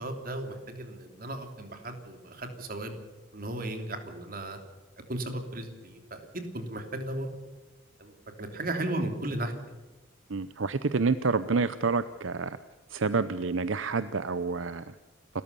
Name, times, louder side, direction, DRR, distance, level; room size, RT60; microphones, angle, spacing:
voice 1, 0.0-2.9 3.3-4.6 5.1-7.3 8.0-8.1 8.4-9.5, right 1 dB, 45° right, 6 dB, 2.9 m, -35 dB
voice 2, 10.3-12.6 12.9-14.8, right 4 dB, 75° right, 13 dB, 0.7 m, -28 dB
28.5 x 14.0 x 6.9 m, 1.2 s
head